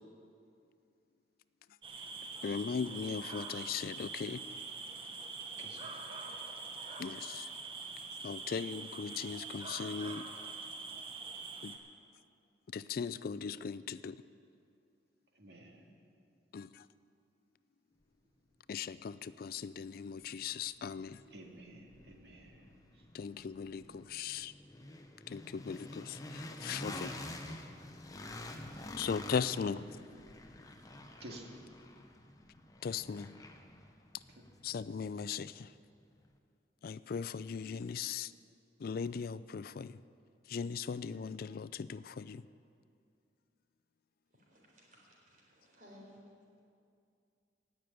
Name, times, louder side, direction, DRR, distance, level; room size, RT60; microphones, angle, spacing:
sound 1, 1.8-11.8, right 4 dB, 30° right, 1.1 m, -44 dB
voice 1, 2.4-4.4 7.0-7.5 8.2-10.3 11.6-11.8 12.7-14.2 16.5-16.9 18.7-21.2 23.1-24.5 25.3-27.1 28.7-29.8 32.8-33.3 34.6-35.7 36.8-38.3 38.8-40.0 40.5-42.4, left 6 dB, 55° left, 16 dB, 0.4 m, -38 dB
voice 2, 5.6-6.0 15.3-15.8 21.3-23.0 31.2-31.5, right 1 dB, 65° right, 0 dB, 2.0 m, -52 dB
sound 2, 19.8-35.8, left 1 dB, 20° left, 0.9 m, -48 dB
voice 3, 44.3-46.2, equal, 50° right, -3 dB, 4.1 m, -59 dB
16.5 x 6.8 x 9.1 m, 2.4 s
head